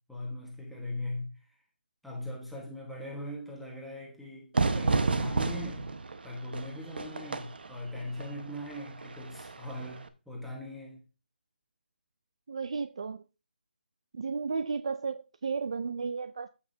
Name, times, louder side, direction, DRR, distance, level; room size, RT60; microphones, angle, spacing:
voice 1, 0.1-1.6 2.0-5.9 6.2-11.0, left 1 dB, ahead, 1.2 m, -40 dB
Fire / Fireworks, 4.5-10.1, right 3 dB, 60° right, 1.1 m, -32 dB
voice 2, 12.5-13.2 14.1-16.5, right 5 dB, 35° right, 0.3 m, -33 dB
14.5 x 5.6 x 2.7 m
hypercardioid pair, 175°, 6 cm